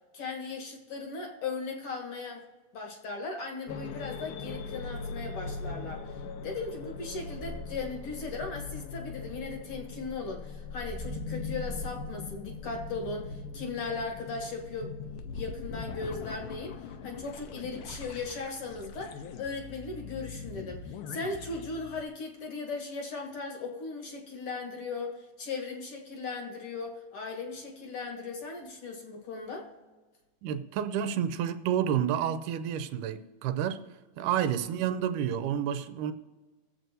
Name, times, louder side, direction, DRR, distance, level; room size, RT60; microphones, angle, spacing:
voice 1, 0.1-2.4 2.7-6.0 6.4-15.0 15.3-29.7, left 4 dB, 55° left, 1.7 m, -38 dB
sound 1, 3.7-22.0, left 4 dB, 80° left, 2.2 m, -40 dB
voice 2, 30.4-33.8 34.2-36.1, right 9 dB, 85° right, 2.1 m, -30 dB
20.5 x 7.7 x 2.7 m
omnidirectional pair, 3.8 m